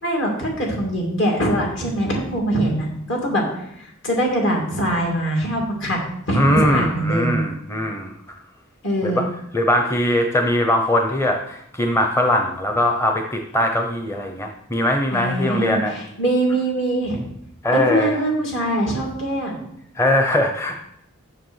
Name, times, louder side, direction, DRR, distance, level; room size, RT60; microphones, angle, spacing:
voice 1, 0.0-3.4 3.8-6.0 6.3-7.4 8.8-9.2 15.1-17.2 17.7-19.6, right 1 dB, 65° left, 0 dB, 2.7 m, -22 dB
voice 2, 6.3-8.1 9.0-9.3 9.5-15.9 17.6-18.1 20.0-20.8, left 1 dB, 15° left, 3 dB, 0.7 m, -20 dB
6.9 x 6.7 x 6.4 m, 0.74 s
head